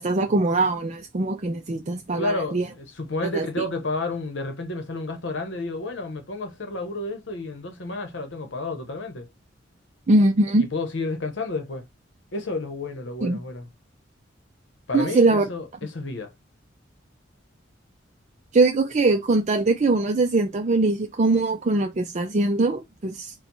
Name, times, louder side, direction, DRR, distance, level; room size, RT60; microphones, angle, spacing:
voice 1, 0.0-2.7 3.3-3.4 10.1-10.7 13.2-13.4 14.9-15.5 18.5-23.3, right 2 dB, 40° right, 0.5 m, -21 dB
voice 2, 2.2-9.3 10.7-11.8 12.3-13.7 14.9-16.3, left 2 dB, 70° left, 0.9 m, -31 dB
4.5 x 2.2 x 3.9 m
head